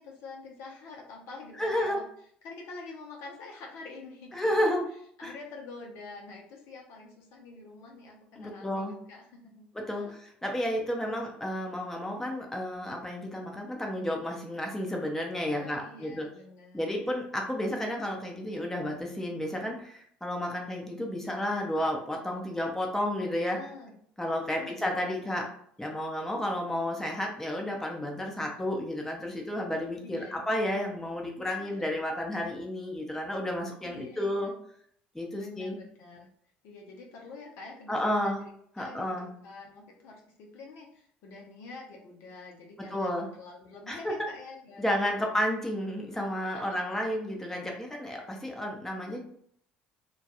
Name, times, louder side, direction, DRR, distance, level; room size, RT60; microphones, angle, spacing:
voice 1, 0.0-2.0 2.4-4.3 4.6-4.7 5.2-9.7 10.0-10.2 15.5-17.0 23.5-24.0 24.6-25.5 30.0-30.5 33.8-34.5 35.4-36.3 36.6-38.5 38.8-39.1 39.4-45.3 46.5-46.8 49.1-49.2, left 3 dB, 65° left, 0 dB, 0.6 m, -47 dB
voice 2, 1.6-2.0 4.3-4.9 5.2-5.3 8.4-9.0 9.7-16.3 16.7-23.6 24.2-25.5 25.8-34.5 35.1-35.8 37.9-38.4 38.8-39.3 42.8-43.3 43.9-44.2 44.8-49.2, left 1 dB, 5° left, 0 dB, 0.6 m, -31 dB
2.2 x 2.2 x 2.8 m, 0.65 s
hypercardioid pair, 60°, 5 cm